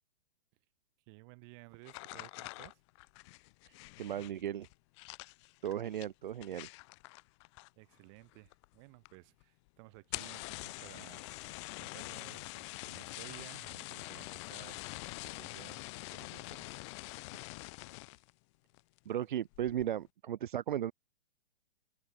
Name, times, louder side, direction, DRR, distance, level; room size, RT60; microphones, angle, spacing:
voice 1, 1.1-2.8 7.8-16.7, right 35 dB, 25° right, 3.6 m, -56 dB
sound 1, 1.8-8.0 8.2-8.8 9.1-9.2 9.4-9.5 10.0-18.3 18.7-19.1 19.5-19.9, left 25 dB, 25° left, 3.7 m, -45 dB
voice 2, 3.7-4.7 5.6-6.7 19.1-20.9, right 10 dB, 50° right, 0.4 m, -36 dB
hypercardioid pair, 170°, 33 cm